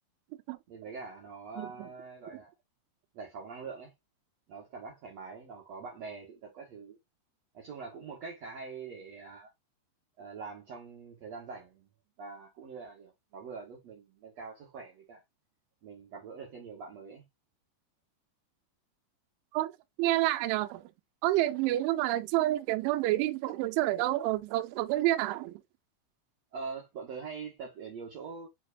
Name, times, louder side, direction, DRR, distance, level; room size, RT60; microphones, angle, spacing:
voice 1, 0.7-2.5 3.1-3.9 4.5-7.0 7.5-9.5 10.2-11.9 12.2-15.2 15.8-17.2 26.5-28.5, right 5 dB, 70° right, 1.6 m, -44 dB
voice 2, 1.6-1.9 19.5-19.7 20.0-20.8 21.2-25.6, right 16 dB, 85° right, 3.0 m, -28 dB
9.2 x 4.1 x 2.6 m
omnidirectional pair, 5.6 m